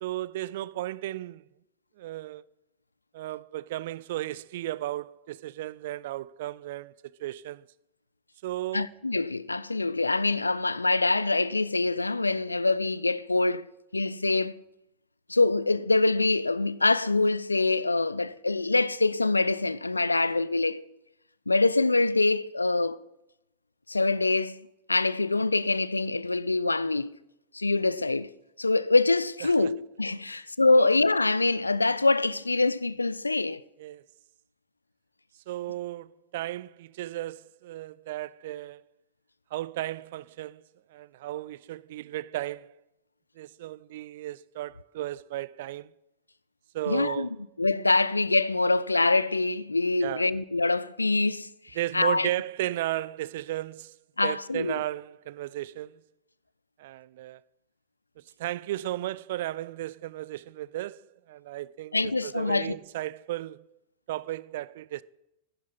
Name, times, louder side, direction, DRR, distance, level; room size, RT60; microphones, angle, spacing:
voice 1, 0.0-1.4 2.0-2.4 3.1-6.9 7.2-7.6 8.4-8.9 29.4-29.7 30.3-30.4 33.8-34.0 35.5-38.8 39.5-40.6 40.9-42.7 43.4-45.9 46.7-47.3 50.0-50.3 51.8-54.0 54.2-55.9 56.8-57.4 58.4-63.7 64.1-65.0, right 15 dB, 55° right, 0.3 m, -34 dB
voice 2, 8.7-13.7 13.9-14.6 15.3-20.8 21.5-23.0 23.9-27.1 27.5-28.3 28.6-33.6 46.9-47.3 47.6-52.3 54.2-54.8 61.9-62.8, left 3 dB, 80° left, 0.3 m, -25 dB
11.0 x 11.0 x 4.2 m
figure-of-eight pair, 90°, 0 cm